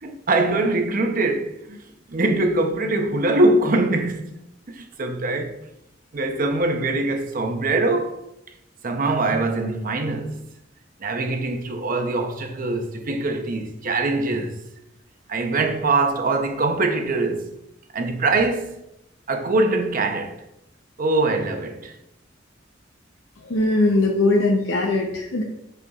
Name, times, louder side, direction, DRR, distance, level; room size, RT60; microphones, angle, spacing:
voice 1, 0.0-1.8 2.1-5.5 6.1-8.2 8.8-10.4 11.0-14.6 15.3-17.6 17.9-18.8 19.3-20.4 21.0-21.9, right 2 dB, 45° right, 0.7 m, -23 dB
voice 2, 23.5-25.4, left 2 dB, 80° left, 0.7 m, -20 dB
7.9 x 5.4 x 2.4 m
head